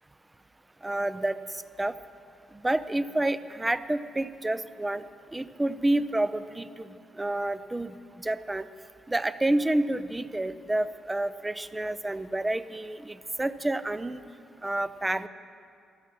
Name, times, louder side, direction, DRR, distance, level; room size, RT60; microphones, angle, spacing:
voice 1, 0.8-1.4 1.8-1.9 2.6-5.0 5.3-8.7 9.1-14.2 14.6-15.3, right 1 dB, 15° right, 14 dB, 0.5 m, -29 dB
14.0 x 12.5 x 6.2 m, 2.4 s
cardioid pair, 90°, 0 cm